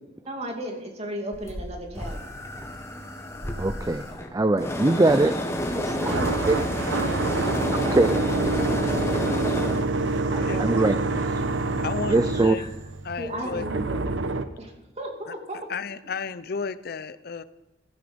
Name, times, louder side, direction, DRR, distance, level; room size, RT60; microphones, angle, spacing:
voice 1, 0.3-2.2 5.0-6.7 7.4-9.6 10.2-10.9 12.4-12.7 13.2-14.1 14.6-15.7, right 1 dB, 35° right, 2 dB, 2.5 m, -37 dB
sound 1, 1.3-9.9, left 1 dB, 15° left, 1.3 m, -30 dB
voice 2, 3.6-4.1 4.3-5.3 5.8-6.2 6.5-6.6 7.7-8.1 10.6-10.9 12.1-12.6, right 2 dB, 20° right, 12 dB, 0.4 m, -21 dB
sound 2, 5.5-14.4, right 3 dB, 85° right, 0.9 m, -27 dB
sound 3, 5.6-6.7 7.7-7.8 8.0-9.2 10.1-10.9, equal, 70° left, 2.4 m, -43 dB
voice 3, 11.8-12.6 13.0-13.6 15.7-17.4, left 5 dB, 55° left, 14 dB, 0.6 m, -32 dB
15.5 x 14.5 x 5.2 m, 0.96 s
head